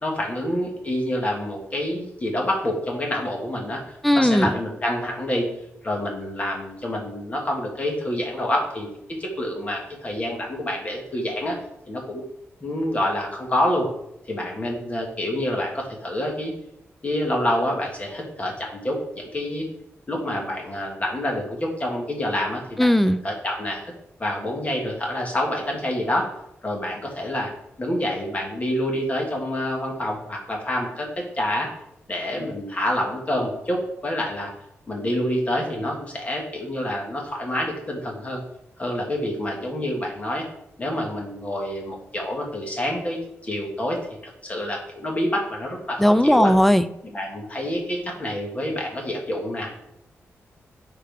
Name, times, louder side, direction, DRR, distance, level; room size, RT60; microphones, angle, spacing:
voice 1, 0.0-3.8 4.1-5.5 5.8-8.9 9.2-11.6 11.9-12.2 12.6-13.9 14.3-16.5 17.0-19.7 20.1-22.9 23.2-23.8 24.2-26.3 26.6-27.5 27.8-31.1 31.3-31.7 32.1-34.5 34.9-38.4 38.8-40.4 40.8-44.0 44.4-46.5 47.0-49.7, left 1 dB, 30° left, -1 dB, 1.9 m, -27 dB
voice 2, 4.0-4.6 22.8-23.2 46.0-46.9, equal, 5° left, 13 dB, 0.4 m, -17 dB
9.8 x 4.4 x 3.6 m, 0.80 s
wide cardioid pair, 130°, 5 cm